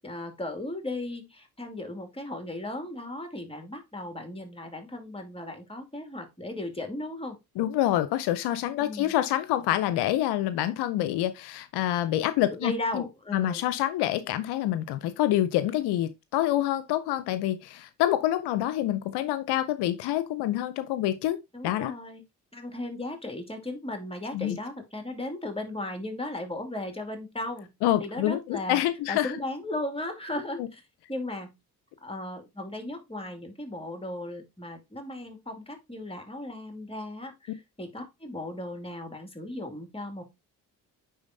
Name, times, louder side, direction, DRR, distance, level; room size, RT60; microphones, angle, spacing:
voice 1, 0.0-7.4 8.8-9.1 12.6-13.7 21.5-22.2 22.5-27.7 28.0-28.8 29.1-30.8 31.1-31.5 32.0-40.2, left 1 dB, 15° left, 2.3 m, -36 dB
voice 2, 7.6-13.0 13.3-21.4 21.6-21.9 24.3-24.6 27.8-29.3 30.6-30.7, left 13 dB, 80° left, 0.6 m, -27 dB
9.6 x 3.8 x 2.6 m
hypercardioid pair, 50°, 40 cm